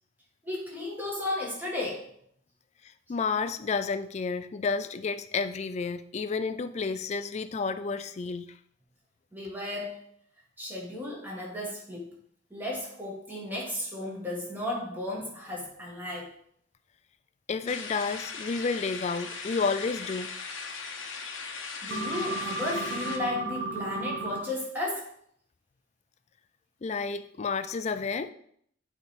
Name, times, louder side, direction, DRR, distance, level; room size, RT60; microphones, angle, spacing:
voice 1, 0.4-2.0 9.3-10.0 10.6-12.1 12.5-16.3 21.8-25.1, left 1 dB, 10° right, -4 dB, 1.7 m, -34 dB
voice 2, 3.1-8.5 17.5-20.4 26.8-28.3, left 4 dB, 35° left, 11 dB, 0.3 m, -31 dB
sound 1, 17.7-23.2, left 5 dB, 90° left, 0.9 m, -38 dB
sound 2, 21.9-24.4, right 3 dB, 65° right, 0.9 m, -33 dB
8.2 x 3.4 x 4.4 m, 0.67 s
head